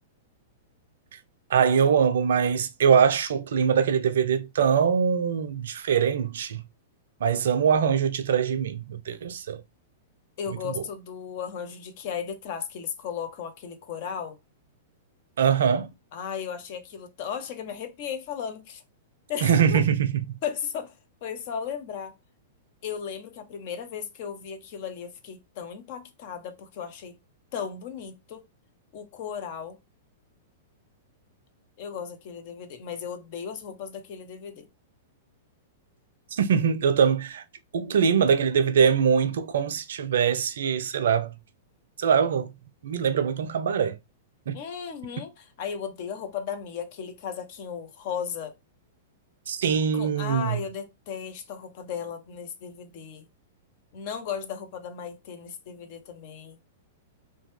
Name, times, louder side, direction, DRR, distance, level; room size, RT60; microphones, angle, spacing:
voice 1, 1.5-6.6 7.2-9.6 10.5-10.8 15.4-15.9 19.4-20.1 36.3-37.4 37.7-41.3 42.0-42.5 42.8-44.0 44.5-44.6 49.5-50.6, right 7 dB, 65° right, 0.4 m, -23 dB
voice 2, 10.4-14.4 16.1-18.8 19.3-19.8 20.4-20.9 21.2-22.1 22.8-27.1 27.5-28.4 28.9-29.8 31.8-34.7 44.5-48.5 49.9-53.3 53.9-56.6, left 7 dB, 50° left, 0.7 m, -35 dB
2.7 x 2.2 x 3.2 m
figure-of-eight pair, 105°, 0 cm